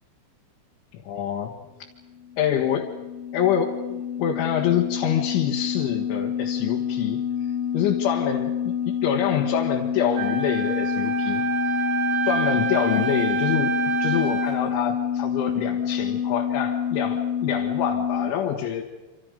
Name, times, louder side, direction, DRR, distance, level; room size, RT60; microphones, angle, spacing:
voice 1, 0.9-1.5 2.4-2.9 3.3-11.4 12.2-13.7 14.0-18.8, left 9 dB, 80° left, 1 dB, 4.0 m, -26 dB
sound 1, 2.1-18.3, left 8 dB, 15° left, 2.0 m, -28 dB
Wind instrument woodwind instrument, 10.2-14.6, right 7 dB, 65° right, 4.6 m, -27 dB
28.0 x 27.0 x 5.2 m, 1.2 s
omnidirectional pair, 5.5 m